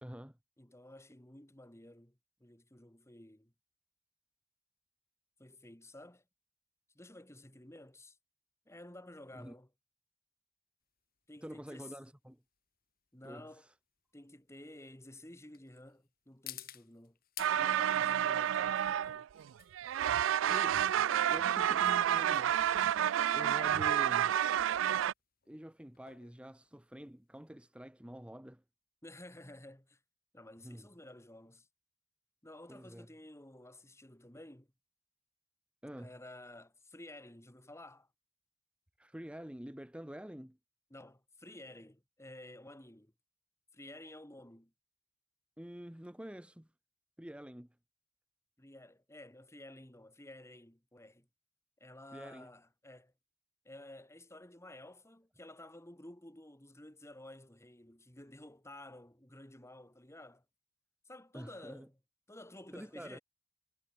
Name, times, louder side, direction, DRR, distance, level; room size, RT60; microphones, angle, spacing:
voice 1, 0.0-0.4 9.3-9.6 11.4-12.4 13.2-13.7 20.4-22.6 22.8-24.4 25.5-28.6 30.6-30.9 32.7-33.1 35.8-36.1 39.0-40.6 45.6-46.7 47.2-47.8 52.1-52.5 61.3-61.9 62.7-63.2, equal, 5° right, 0.9 m, -47 dB
voice 2, 0.6-3.5 5.4-6.2 6.9-8.2 8.7-9.7 11.3-11.9 13.1-13.7 14.1-17.2 17.5-19.3 29.0-30.0 30.3-31.7 32.4-34.7 36.0-38.1 40.9-43.1 43.7-44.7 48.6-51.3 51.8-53.1 53.6-60.4 61.0-61.9 62.3-63.2, left 1 dB, 15° left, 2.8 m, -53 dB
sound 1, 10.8-27.5, left 13 dB, 50° left, 2.4 m, -55 dB
sound 2, 17.4-19.5 19.7-25.1, right 10 dB, 75° right, 0.3 m, -30 dB
head